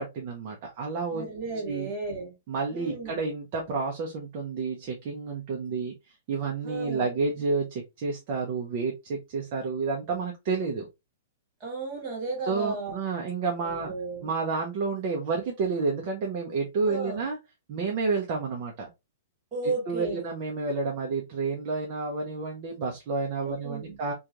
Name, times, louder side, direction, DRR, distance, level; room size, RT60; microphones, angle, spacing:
voice 1, 0.0-1.3 1.7-1.9 2.5-5.9 6.3-10.9 12.4-13.9 14.2-17.4 17.7-18.9 19.9-24.1, right 4 dB, 40° right, 0.6 m, -30 dB
voice 2, 1.1-2.3 2.7-3.2 6.6-7.1 11.6-13.0 13.6-14.3 16.9-17.2 19.5-20.3 23.4-24.0, right 3 dB, 20° right, 1.7 m, -34 dB
2.9 x 2.3 x 2.4 m
hypercardioid pair, 160°, 0 cm